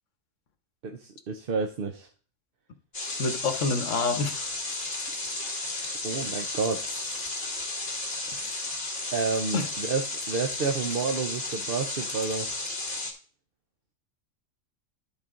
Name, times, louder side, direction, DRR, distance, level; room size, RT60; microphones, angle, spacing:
voice 1, 0.8-2.1 6.0-7.2 9.1-12.5, right 5 dB, 55° right, 4 dB, 0.8 m, -30 dB
sound 1, 2.9-13.1, left 2 dB, 50° left, 2.4 m, -33 dB
voice 2, 3.2-4.5 8.3-8.6 9.5-9.7, left 4 dB, 75° left, 8 dB, 1.4 m, -28 dB
12.0 x 4.4 x 3.7 m, 0.42 s
omnidirectional pair, 1.3 m